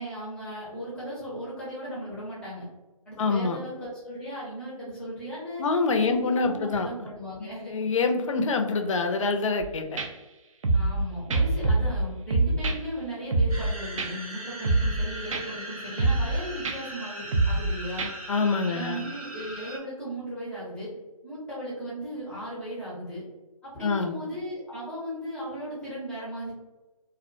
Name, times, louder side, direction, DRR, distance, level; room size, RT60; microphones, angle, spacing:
voice 1, 0.0-2.7 3.1-5.7 6.0-7.7 10.7-18.1 18.6-20.9 21.2-23.2 23.6-26.5, equal, 5° left, -7 dB, 0.5 m, -37 dB
voice 2, 3.2-3.6 5.6-7.1 7.4-10.0 18.3-19.0 23.8-24.2, left 4 dB, 60° left, 5 dB, 0.4 m, -26 dB
sound 1, 9.6-9.7 10.0-10.1 10.6-11.0 11.3-12.0 12.3-12.8 13.3-13.7 14.0-14.1 14.6-15.0 15.3-15.4 16.0-16.4 16.7-16.8 17.3-17.7 18.0-18.1, right 3 dB, 60° right, 0.4 m, -24 dB
sound 2, 13.5-19.8, right 1 dB, 85° right, 1.0 m, -40 dB
2.4 x 2.1 x 2.4 m, 1.1 s
figure-of-eight pair, 145°, 18 cm